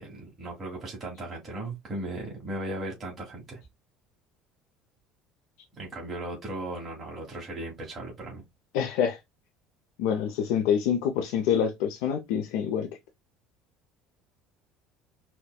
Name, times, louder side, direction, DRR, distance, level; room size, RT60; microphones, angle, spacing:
voice 1, 0.0-3.6 5.7-8.4, right 1 dB, 25° right, 1.3 m, -37 dB
voice 2, 8.7-9.2 10.0-12.9, left 8 dB, 85° left, 0.5 m, -26 dB
4.3 x 2.1 x 2.2 m
cardioid pair, 125°, 0 cm